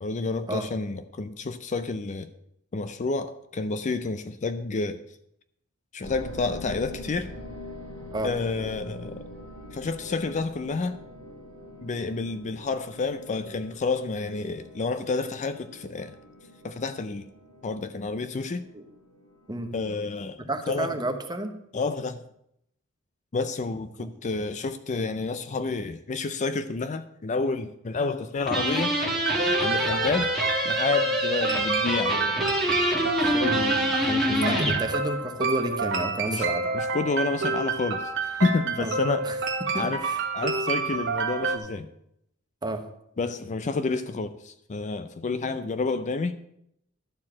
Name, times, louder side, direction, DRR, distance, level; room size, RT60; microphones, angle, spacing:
voice 1, 0.0-2.3 2.7-5.0 5.9-7.3 8.2-9.2 9.7-11.0 11.8-16.2 16.6-17.3 17.6-18.7 19.7-20.9 21.7-22.2 23.3-29.0 29.6-30.3 30.6-32.5 33.0-34.8 36.3-36.5 36.7-39.4 39.7-40.0 40.3-41.9 43.2-46.4, left 3 dB, 35° left, 0.4 m, -29 dB
sound 1, 6.0-20.1, left 1 dB, 80° left, 3.9 m, -44 dB
voice 2, 20.5-21.5 34.2-36.6 38.8-38.9 39.2-39.4 39.7-40.2 42.6-42.8, right 1 dB, 20° right, 1.0 m, -31 dB
sound 2, 28.5-34.8, equal, ahead, 1.8 m, -26 dB
sound 3, 29.3-41.6, right 4 dB, 60° right, 1.3 m, -28 dB
12.0 x 4.5 x 7.3 m
head